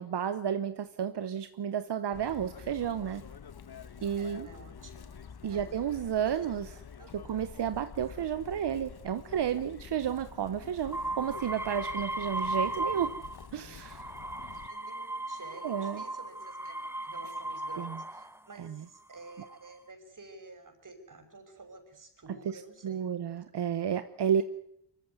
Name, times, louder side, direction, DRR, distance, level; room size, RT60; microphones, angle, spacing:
voice 1, 0.0-3.2 4.0-4.5 5.4-6.7 7.1-13.1 13.5-14.0 15.6-16.0 17.8-17.9 22.8-24.4, right 8 dB, 85° right, 12 dB, 1.1 m, -32 dB
Chirp tweet, 2.1-14.7, left 7 dB, 70° left, 1.5 m, -48 dB
voice 2, 4.0-5.2 5.4-5.8 6.2-6.5 7.0-7.1 14.5-23.1 23.5-23.6 24.4-24.5, right 3 dB, 50° right, 6 dB, 6.3 m, -51 dB
sound 1, 10.9-13.5 13.8-18.4 19.1-19.7, right 1 dB, 5° right, 1.1 m, -36 dB
24.0 x 15.0 x 9.5 m, 0.74 s
cardioid pair, 70°, 40 cm